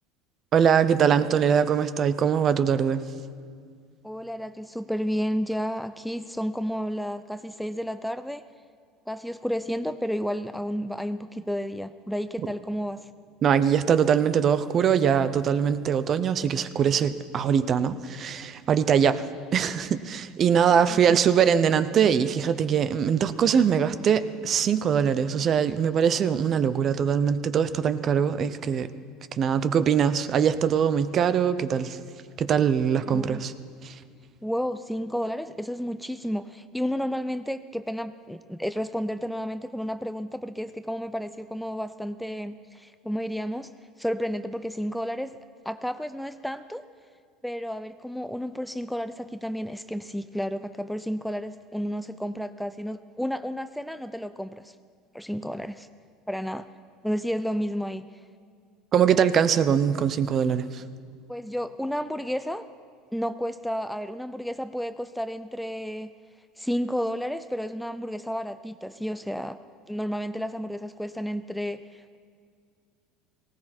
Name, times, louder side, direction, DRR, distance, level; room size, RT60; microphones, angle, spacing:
voice 1, 0.5-3.0 13.4-19.2 19.5-28.9 29.4-32.0 32.4-33.5 33.8-33.9 58.9-60.8, right 7 dB, 40° right, 13 dB, 0.7 m, -22 dB
voice 2, 4.0-8.4 9.1-13.1 20.7-21.0 33.1-33.4 34.4-43.7 44.0-45.4 45.7-46.8 47.4-54.7 55.1-55.9 56.3-56.7 57.0-58.1 61.3-62.7 63.1-66.1 66.6-69.6 69.9-72.2, equal, ahead, 12 dB, 0.4 m, -31 dB
18.5 x 17.5 x 4.4 m, 2.1 s
supercardioid pair, 115°, 0 cm